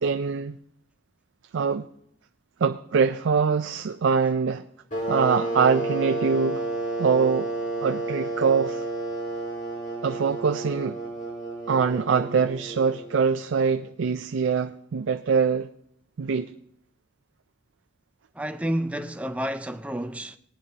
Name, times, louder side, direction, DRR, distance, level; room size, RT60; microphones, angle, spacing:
voice 1, 0.0-0.6 1.5-1.9 2.6-4.6 5.1-6.6 7.0-7.5 7.8-8.8 10.0-11.0 11.7-15.7 16.2-16.6, right 5 dB, 85° right, 0.4 m, -23 dB
sound 1, 4.9-13.3, right 2 dB, 45° left, 4.5 m, -31 dB
voice 2, 18.3-20.4, equal, 5° right, 0.4 m, -30 dB
19.0 x 11.0 x 2.9 m
head